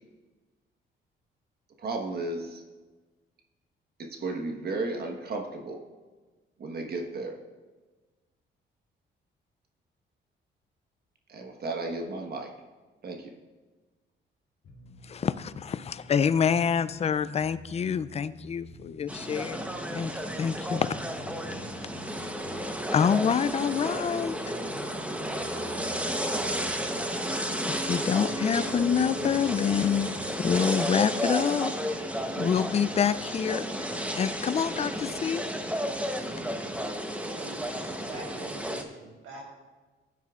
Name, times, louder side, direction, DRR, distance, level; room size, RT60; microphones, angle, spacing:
voice 1, 1.8-2.6 4.0-5.8 6.6-7.4 11.3-12.5 13.0-13.3, right 2 dB, 50° right, 3 dB, 1.3 m, -34 dB
sound 1, 14.6-30.6, left 3 dB, 75° left, 2.5 m, -49 dB
voice 2, 15.1-19.6 19.9-20.9 22.9-24.4 27.5-31.7 32.4-33.6 34.2-35.4, left 7 dB, 30° left, 15 dB, 0.4 m, -27 dB
sound 2, 19.1-38.8, equal, 5° right, 0.9 m, -32 dB
voice 3, 37.2-39.4, right 2 dB, 85° right, -5 dB, 3.5 m, -44 dB
15.0 x 9.3 x 2.4 m, 1.3 s
cardioid pair, 90°, 20 cm